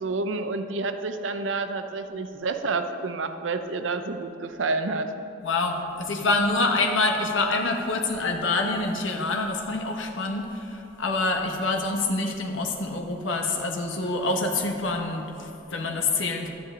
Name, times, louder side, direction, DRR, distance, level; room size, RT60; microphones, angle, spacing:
voice 1, 0.0-5.1, right 3 dB, 80° right, 8 dB, 0.6 m, -29 dB
voice 2, 5.4-16.5, left 3 dB, 90° left, 3 dB, 1.2 m, -26 dB
12.5 x 9.5 x 3.8 m, 2.9 s
head